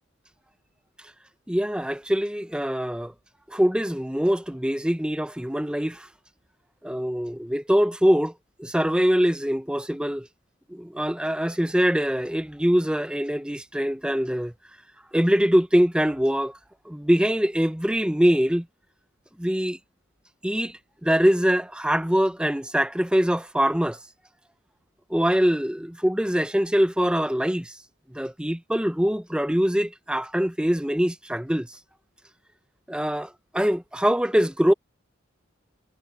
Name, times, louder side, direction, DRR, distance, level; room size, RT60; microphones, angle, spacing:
voice 1, 1.5-3.1 3.5-6.1 6.8-8.3 8.6-10.3 10.7-14.5 15.1-16.5 16.9-18.6 19.4-19.8 20.4-24.0 25.1-27.7 28.1-31.7 32.9-34.7, equal, 5° right, 0.8 m, -23 dB
head